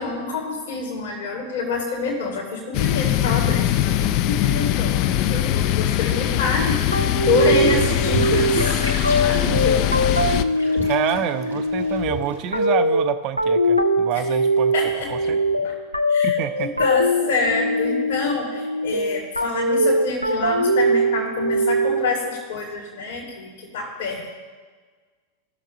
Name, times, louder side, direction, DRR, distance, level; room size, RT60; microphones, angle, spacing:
voice 1, 0.0-10.0 14.7-15.2 15.6-15.7 16.1-16.4 16.6-24.3, left 4 dB, 60° left, -5 dB, 1.8 m, -27 dB
sound 1, 2.7-10.4, left 12 dB, 45° left, 0.4 m, -22 dB
voice 2, 5.1-5.4 7.4-7.7 10.9-14.7 15.1-15.4 16.2-16.9, right 10 dB, 40° right, 10 dB, 0.6 m, -27 dB
sound 2, 6.9-22.3, equal, 90° right, 0.6 m, -22 dB
sound 3, 7.3-12.7, right 2 dB, 85° left, 1.7 m, -31 dB
17.0 x 6.6 x 2.6 m, 1.5 s
figure-of-eight pair, 90°, 0 cm